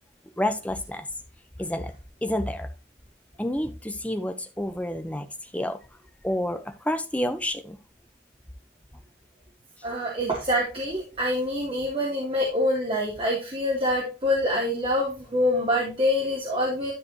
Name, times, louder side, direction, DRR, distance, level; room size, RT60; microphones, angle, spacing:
voice 1, 0.4-1.1 1.6-1.9 2.2-2.7 3.4-5.8 6.2-7.8, left 1 dB, 10° left, 8 dB, 0.9 m, -29 dB
voice 2, 9.8-16.9, left 1 dB, 30° right, -4 dB, 3.0 m, -25 dB
12.5 x 5.1 x 3.0 m, 0.30 s
head